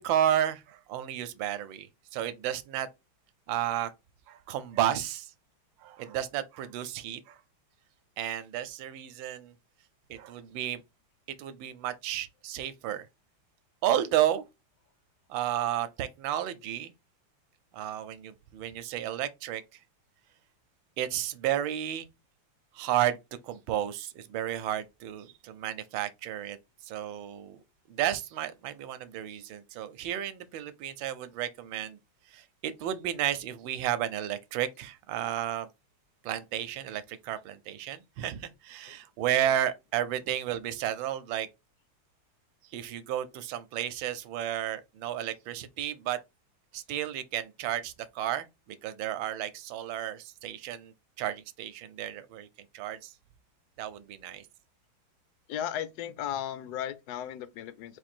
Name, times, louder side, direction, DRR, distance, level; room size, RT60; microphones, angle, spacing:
voice 1, 0.0-2.9 3.5-3.9 4.3-5.3 5.8-7.3 8.2-9.5 10.1-10.8 11.4-13.1 13.8-14.4 15.3-16.9 17.7-19.6 21.0-22.1 22.7-23.2 23.4-26.6 26.9-27.6 27.9-32.0 32.3-35.7 36.2-41.5 42.7-46.2 46.7-52.5 52.7-53.1 53.8-54.4, right 11 dB, 80° right, 1.3 m, -32 dB
voice 2, 55.5-58.0, left 10 dB, 75° left, 0.9 m, -35 dB
4.4 x 2.5 x 4.2 m
omnidirectional pair, 2.2 m